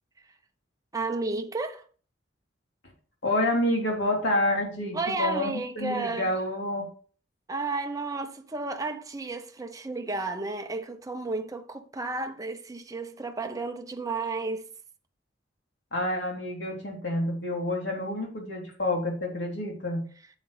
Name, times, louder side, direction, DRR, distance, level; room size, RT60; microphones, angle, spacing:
voice 1, 0.9-1.8 4.9-6.3 7.5-14.7, right 3 dB, 20° right, 0.8 m, -32 dB
voice 2, 3.2-6.9 15.9-20.0, left 1 dB, 65° left, 3.3 m, -28 dB
9.4 x 8.1 x 3.3 m
head